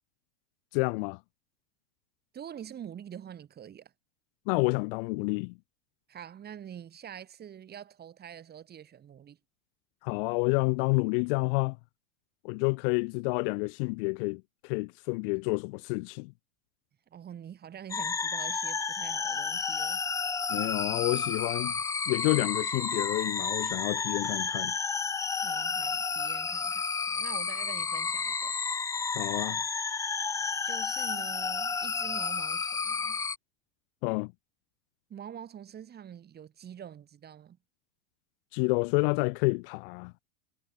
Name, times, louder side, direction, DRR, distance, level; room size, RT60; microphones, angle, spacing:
voice 1, 0.7-1.2 4.5-5.6 10.0-11.8 12.4-16.3 20.5-21.7 22.1-24.7 29.1-29.6 34.0-34.3 38.5-40.1, left 31 dB, 55° left, 0.6 m, -29 dB
voice 2, 2.3-3.9 6.1-9.4 17.1-20.0 25.4-28.5 30.6-33.2 35.1-37.6, right 9 dB, 30° right, 5.6 m, -46 dB
sound 1, 17.9-33.4, left 5 dB, 10° left, 0.4 m, -31 dB
supercardioid pair, 120°, 33 cm